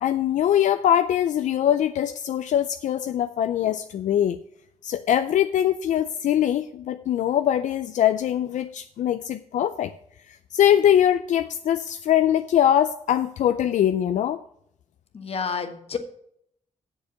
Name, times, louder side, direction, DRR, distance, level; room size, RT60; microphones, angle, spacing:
voice 1, 0.0-4.4 4.8-9.9 10.3-14.4, left 10 dB, 85° left, 10 dB, 0.4 m, -22 dB
voice 2, 15.1-16.0, left 5 dB, 55° left, 7 dB, 1.3 m, -29 dB
7.8 x 6.7 x 6.9 m, 0.71 s
cardioid pair, 85°, 12 cm